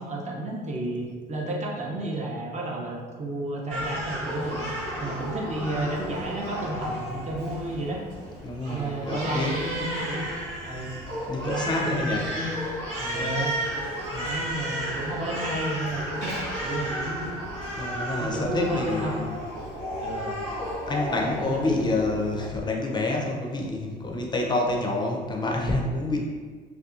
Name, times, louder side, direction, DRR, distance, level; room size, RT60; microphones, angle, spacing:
voice 1, 0.0-4.7 5.0-8.0 8.7-10.3 10.6-10.9 11.4-12.6 13.1-13.6 14.2-17.4 18.2-19.2 20.0-20.4 21.4-21.9, right 1 dB, 35° right, -2 dB, 0.7 m, -32 dB
Crying sobbing, 3.7-22.5, equal, 85° right, 1.2 m, -33 dB
voice 2, 8.4-9.6 11.3-12.3 13.0-13.3 14.1-14.3 17.8-19.3 20.9-26.2, left 2 dB, 20° left, -1 dB, 0.5 m, -28 dB
2.7 x 2.3 x 2.5 m, 1.5 s
supercardioid pair, 80°, 20 cm